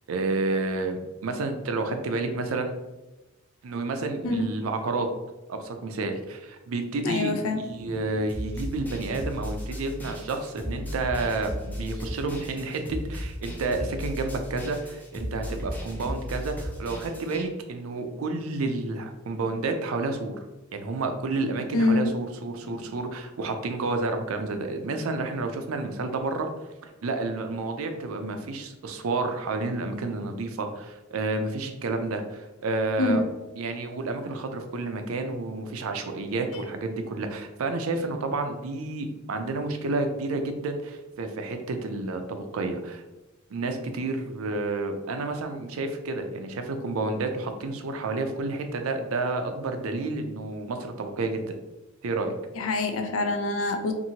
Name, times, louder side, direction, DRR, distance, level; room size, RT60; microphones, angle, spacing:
voice 1, 0.1-2.7 3.6-5.1 5.5-20.4 20.7-26.5 26.8-33.2 33.6-43.0 43.5-51.6 52.0-52.3, right 3 dB, 90° right, 6 dB, 0.4 m, -30 dB
voice 2, 7.0-8.0 21.7-22.1 22.6-22.9 33.0-33.3 36.5-36.7 52.5-53.9, left 2 dB, 75° left, 5 dB, 0.4 m, -26 dB
sound 1, 8.3-17.4, equal, 10° left, 0.4 m, -35 dB
2.8 x 2.6 x 2.8 m, 1.1 s
head